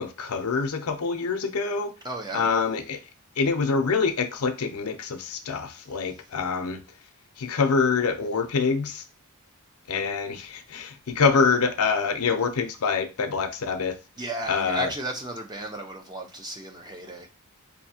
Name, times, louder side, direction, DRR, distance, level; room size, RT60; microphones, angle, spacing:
voice 1, 0.0-1.9 2.3-3.0 3.4-6.8 7.4-9.0 9.9-14.0 14.5-14.9, left 5 dB, 75° left, 0.6 m, -25 dB
voice 2, 2.0-2.5 14.2-17.3, right 1 dB, 20° right, 0.7 m, -34 dB
4.7 x 2.7 x 2.7 m
head